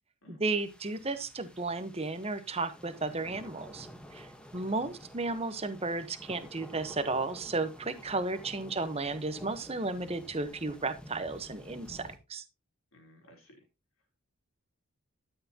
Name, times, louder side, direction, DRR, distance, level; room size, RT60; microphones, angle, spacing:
voice 1, 0.4-3.9 4.1-4.3 4.5-12.4, right 3 dB, 25° right, 10 dB, 1.1 m, -33 dB
sound 1, 0.6-12.2, equal, 5° left, 1.2 m, -51 dB
voice 2, 4.4-4.8 12.9-13.7, left 1 dB, 65° left, 3 dB, 3.8 m, -58 dB
13.0 x 7.8 x 2.9 m, 0.25 s
head